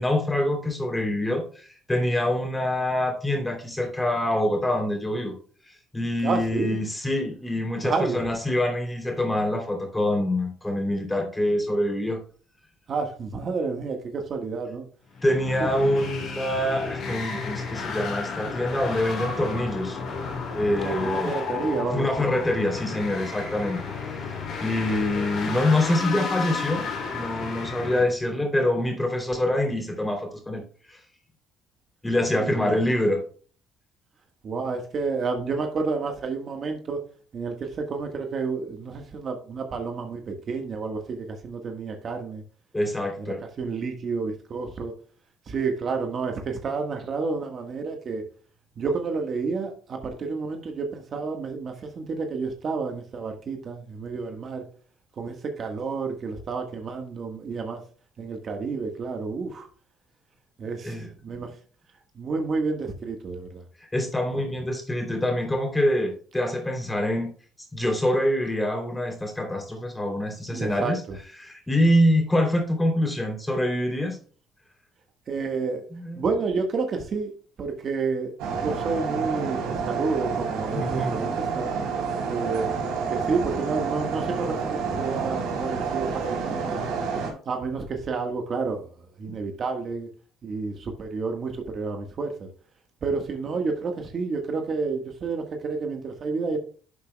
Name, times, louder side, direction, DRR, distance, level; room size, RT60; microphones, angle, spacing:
voice 1, 0.0-5.4 5.7-12.2 15.2-20.0 20.5-21.4 21.9-23.8 24.1-24.3 24.6-30.6 30.9-31.0 32.0-33.2 42.7-43.4 60.8-61.1 63.9-67.3 67.7-71.0 71.4-74.2 75.9-76.2 80.7-81.1, left 1 dB, 10° left, 2 dB, 3.1 m, -25 dB
voice 2, 6.2-6.8 7.8-8.3 12.9-14.8 15.6-15.7 20.8-22.3 32.3-32.8 34.4-37.0 37.3-42.4 43.2-44.9 45.5-48.2 48.8-54.7 55.2-57.8 58.2-59.7 60.6-61.0 61.2-61.5 62.1-63.6 64.3-64.5 70.5-71.2 75.3-75.9 76.1-77.3 77.6-81.7 82.2-82.7 83.1-86.8 87.4-88.9 89.2-90.1 90.4-92.5 93.0-96.6, right 4 dB, 45° right, 4 dB, 1.4 m, -30 dB
sound 1, 15.1-28.0, left 4 dB, 55° left, 2.9 m, -32 dB
sound 2, 78.4-87.3, right 5 dB, 85° right, 3.3 m, -29 dB
11.0 x 6.9 x 2.3 m, 0.42 s
cardioid pair, 95°, 0 cm